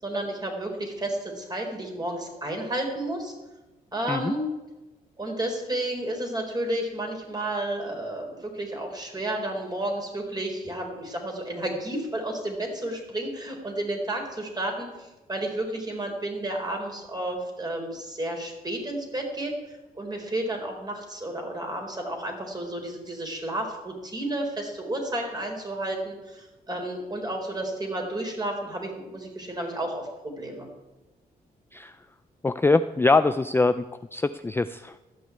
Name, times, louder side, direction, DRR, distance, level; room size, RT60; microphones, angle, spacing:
voice 1, 0.0-3.3 3.9-4.5 5.2-30.7, right 1 dB, 25° right, 2 dB, 4.2 m, -32 dB
voice 2, 32.4-33.8 34.1-35.0, left 3 dB, 15° left, 11 dB, 0.4 m, -23 dB
13.5 x 6.2 x 9.5 m, 1.1 s
cardioid pair, 75°, 16 cm